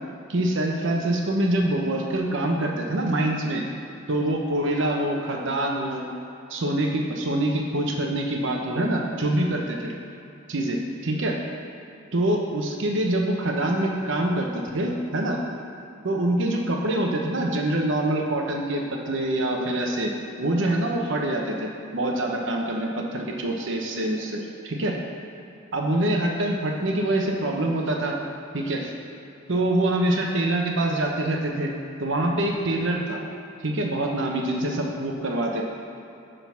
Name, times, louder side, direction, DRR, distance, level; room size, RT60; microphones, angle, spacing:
voice 1, 0.3-3.6 4.1-6.0 6.5-9.9 10.5-11.4 12.1-14.5 14.7-15.4 16.0-20.1 20.4-25.0 25.7-28.2 28.5-28.9 29.5-31.7 32.0-33.2 33.6-35.6, right 1 dB, 65° right, 0 dB, 1.0 m, -25 dB
9.1 x 3.9 x 5.8 m, 2.8 s
head